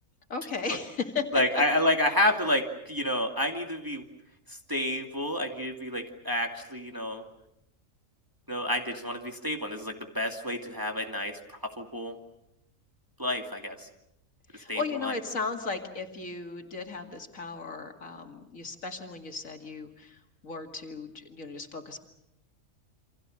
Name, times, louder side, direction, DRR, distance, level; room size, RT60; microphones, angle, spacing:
voice 1, 0.3-1.6 14.5-22.0, left 4 dB, 75° left, 4 dB, 2.6 m, -36 dB
voice 2, 1.3-4.0 4.7-7.2 8.5-12.2 13.2-13.9 14.7-15.1, left 1 dB, 15° right, 2 dB, 2.4 m, -29 dB
28.5 x 26.5 x 6.6 m, 0.82 s
omnidirectional pair, 1.4 m